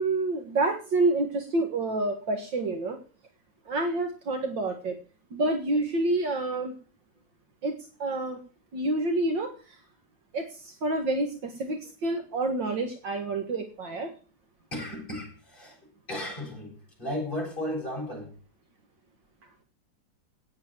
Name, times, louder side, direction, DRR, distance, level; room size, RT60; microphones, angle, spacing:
voice 1, 0.0-3.0 3.7-4.9 5.3-6.7 7.6-8.4 8.7-9.8 10.3-14.1, right 2 dB, 75° right, 5 dB, 2.5 m, -28 dB
voice 2, 14.7-15.8 16.1-18.3, left 1 dB, 25° left, 0 dB, 8.2 m, -35 dB
17.5 x 8.1 x 7.5 m, 0.38 s
omnidirectional pair, 2.0 m